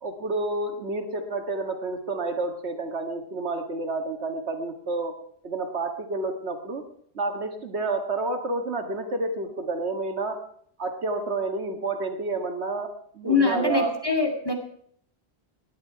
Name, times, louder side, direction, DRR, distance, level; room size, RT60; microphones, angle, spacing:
voice 1, 0.0-5.2 5.4-6.8 7.1-10.4 10.8-13.9, right 3 dB, 90° right, 6 dB, 1.9 m, -29 dB
voice 2, 13.2-14.5, left 4 dB, 20° left, 1 dB, 2.6 m, -23 dB
18.5 x 10.5 x 4.6 m, 0.63 s
omnidirectional pair, 1.1 m